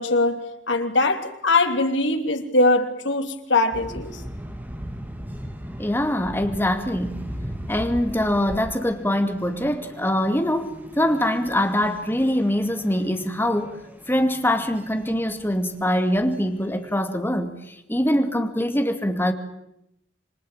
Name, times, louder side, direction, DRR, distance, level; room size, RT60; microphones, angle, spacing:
voice 1, 0.0-4.1, left 2 dB, 75° left, 2.9 m, -21 dB
sound 1, 3.7-17.0, equal, 10° right, 2.5 m, -39 dB
voice 2, 5.8-7.3 7.7-13.8 14.1-19.3, left 1 dB, 10° left, 2.4 m, -23 dB
26.5 x 23.5 x 9.1 m
head